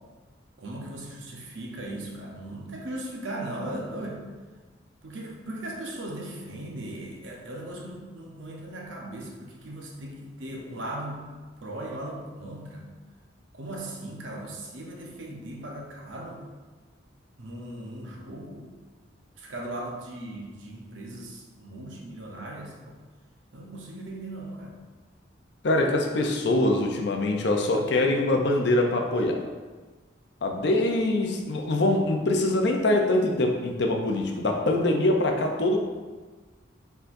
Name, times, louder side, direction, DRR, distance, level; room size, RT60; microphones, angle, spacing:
voice 1, 0.6-4.2 5.0-11.3 11.6-12.9 13.5-16.4 17.4-18.7 19.4-23.0 23.5-24.8, right 1 dB, 80° right, -1 dB, 0.8 m, -38 dB
voice 2, 25.6-29.4 30.4-35.8, left 1 dB, 60° left, 2 dB, 0.5 m, -24 dB
4.4 x 3.8 x 2.6 m, 1.3 s
head